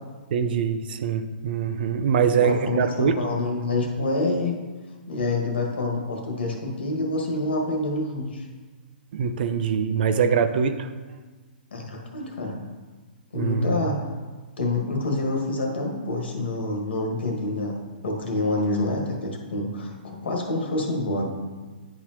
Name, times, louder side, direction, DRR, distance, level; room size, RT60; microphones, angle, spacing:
voice 1, 0.3-3.2 9.1-10.9 13.3-13.8, right 6 dB, 65° right, 10 dB, 0.6 m, -23 dB
voice 2, 2.4-4.5 5.1-8.5 11.7-12.6 13.3-14.0 14.6-17.7 18.0-21.3, left 2 dB, 85° left, 0 dB, 1.6 m, -27 dB
10.0 x 4.3 x 3.0 m, 1.3 s
hypercardioid pair, 135°, 6 cm